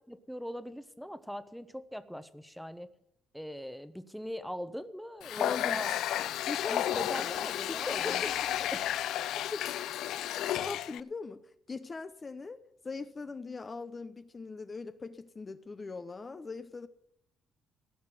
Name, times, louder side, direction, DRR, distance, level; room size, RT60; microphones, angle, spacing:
voice 1, 0.1-2.9 3.3-5.9 6.7-8.2 8.7-8.9, equal, ahead, 1.0 m, -41 dB
Water tap faucet, 5.2-11.0, left 12 dB, 85° left, 0.4 m, -32 dB
voice 2, 5.4-5.8 6.4-8.3 8.6-8.7 9.5-9.6 10.6-16.9, left 4 dB, 30° left, 0.8 m, -40 dB
16.0 x 5.9 x 9.8 m
cardioid pair, 90°, 0 cm